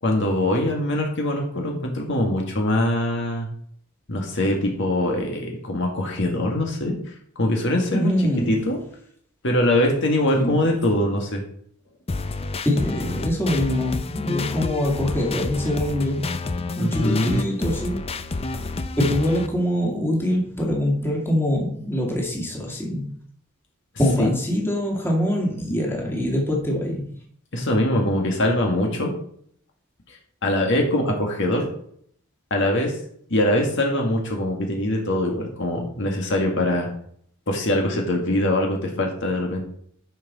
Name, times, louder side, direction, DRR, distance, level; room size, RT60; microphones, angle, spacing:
voice 1, 0.0-3.5 4.1-6.9 7.4-8.1 8.5-8.8 9.4-11.4 16.8-17.4 24.2-24.3 27.5-29.1 30.4-31.7 32.5-33.0 33.3-36.9 37.5-39.6, left 1 dB, 60° left, 1 dB, 1.9 m, -22 dB
voice 2, 7.9-8.6 10.4-10.7 12.7-16.4 16.8-18.1 19.0-23.1 24.0-27.1, left 1 dB, 10° left, -1 dB, 2.1 m, -24 dB
sound 1, 12.1-19.5, left 3 dB, 30° left, 0.5 m, -29 dB
10.0 x 5.8 x 4.2 m, 0.64 s
head